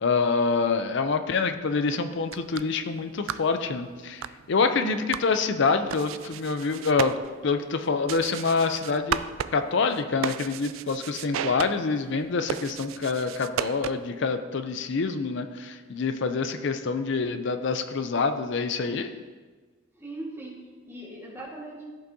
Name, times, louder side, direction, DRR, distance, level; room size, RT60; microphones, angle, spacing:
voice 1, 0.0-7.2 7.4-9.2 9.5-19.1, left 4 dB, 65° left, 8 dB, 0.5 m, -26 dB
sound 1, 2.1-14.2, right 9 dB, 85° right, 0.3 m, -36 dB
voice 2, 19.9-21.9, right 1 dB, 10° right, -4 dB, 1.7 m, -40 dB
14.0 x 5.4 x 2.8 m, 1.4 s
head